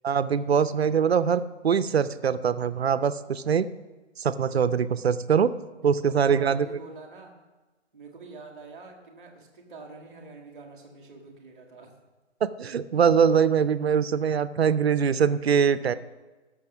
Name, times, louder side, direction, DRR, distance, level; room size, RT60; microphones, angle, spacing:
voice 1, 0.0-3.7 4.2-5.5 5.8-6.7 12.4-15.9, right 7 dB, 55° right, 13 dB, 0.6 m, -23 dB
voice 2, 6.0-7.3 7.9-11.9, right 3 dB, 5° right, -11 dB, 0.6 m, -46 dB
17.0 x 6.5 x 5.9 m, 1.2 s
hypercardioid pair, 170°, 36 cm